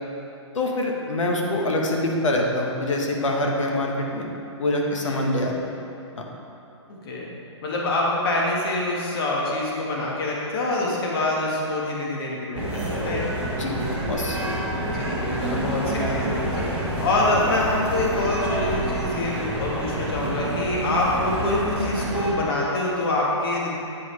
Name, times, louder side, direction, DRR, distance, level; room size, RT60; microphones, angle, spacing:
voice 1, 0.5-4.3 4.6-5.7 6.2-6.3 13.5-13.7 14.1-14.4, left 1 dB, 85° left, 0 dB, 1.1 m, -25 dB
voice 2, 6.9-7.3 7.6-13.2 14.8-23.7, left 2 dB, 50° left, -4 dB, 1.4 m, -25 dB
sound 1, 12.5-22.3, right 1 dB, 10° right, 1.0 m, -28 dB
8.7 x 4.7 x 3.2 m, 2.7 s
hypercardioid pair, 150°, 16 cm